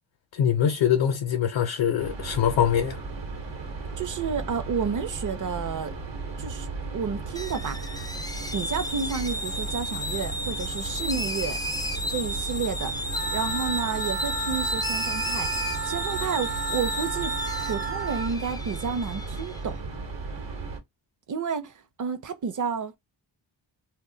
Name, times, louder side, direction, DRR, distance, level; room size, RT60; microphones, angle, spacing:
voice 1, 0.3-3.0, left 9 dB, 70° left, 0.6 m, -23 dB
sound 1, 2.0-20.8, right 3 dB, 70° right, 0.9 m, -36 dB
voice 2, 4.0-5.9 6.4-6.7 6.9-7.9 8.5-11.6 12.1-12.9 13.3-19.8 21.3-22.9, right 6 dB, 45° right, 0.5 m, -31 dB
sound 2, 7.4-19.6, left 1 dB, 10° left, 0.4 m, -33 dB
Wind instrument woodwind instrument, 13.1-18.3, right 7 dB, 90° right, 0.7 m, -34 dB
2.2 x 2.2 x 3.7 m
wide cardioid pair, 90°, 46 cm